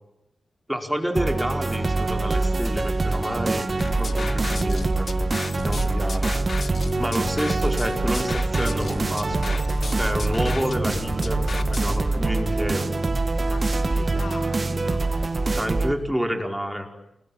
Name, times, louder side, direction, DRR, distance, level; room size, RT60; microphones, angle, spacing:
voice 1, 0.7-3.7 3.9-5.1 5.6-6.3 7.0-9.6 10.0-12.9 15.5-16.9, equal, 5° right, 5.0 m, -29 dB
sound 1, 1.2-15.9, right 3 dB, 40° right, 2.1 m, -24 dB
sound 2, 3.8-12.0, left 4 dB, 55° left, 1.6 m, -34 dB
voice 2, 3.9-4.5 13.5-15.3, left 5 dB, 80° left, 2.0 m, -42 dB
29.5 x 22.0 x 8.6 m
wide cardioid pair, 85°, 0 cm